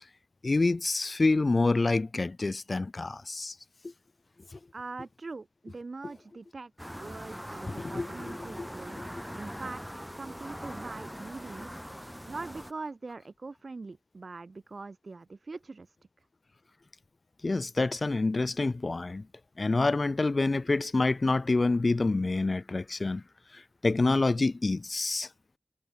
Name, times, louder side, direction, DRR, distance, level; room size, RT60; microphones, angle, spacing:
voice 1, 0.4-3.5 7.7-8.1 8.6-8.7 8.9-9.2 17.4-19.2 19.6-23.2 23.5-25.3, left 3 dB, 60° left, 1.4 m, -27 dB
voice 2, 4.7-9.0 9.3-11.8 12.3-15.9, right 3 dB, 75° right, 3.2 m, -43 dB
sound 1, 6.8-12.7, equal, ahead, 5.8 m, -42 dB
wide cardioid pair, 55°, 0 cm